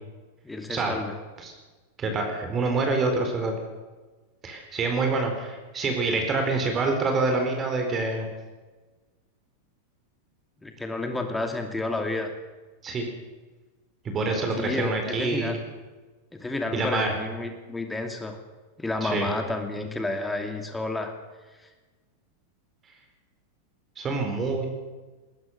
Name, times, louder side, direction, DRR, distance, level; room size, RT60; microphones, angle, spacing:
voice 1, 0.4-1.2 10.6-12.3 14.6-15.6 16.3-18.4 18.8-21.2, left 2 dB, 5° left, 5 dB, 2.6 m, -30 dB
voice 2, 2.0-3.5 4.4-8.3 12.8-13.0 14.0-15.6 16.7-17.1 19.0-19.3 24.0-24.7, right 3 dB, 25° right, 4 dB, 4.5 m, -26 dB
20.5 x 20.0 x 6.6 m, 1.3 s
figure-of-eight pair, 90°, 0 cm